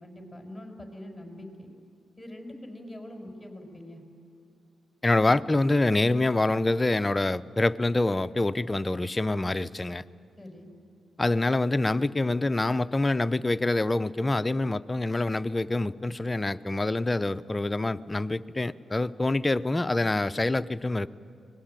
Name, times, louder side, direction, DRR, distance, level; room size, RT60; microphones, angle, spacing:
voice 1, 0.0-1.7 2.2-4.0 10.4-10.7, left 1 dB, 5° left, 3 dB, 5.3 m, -43 dB
voice 2, 5.0-10.0 11.2-21.1, left 2 dB, 25° left, 13 dB, 0.6 m, -26 dB
24.5 x 19.5 x 9.0 m, 2.5 s
supercardioid pair, 55°, 0 cm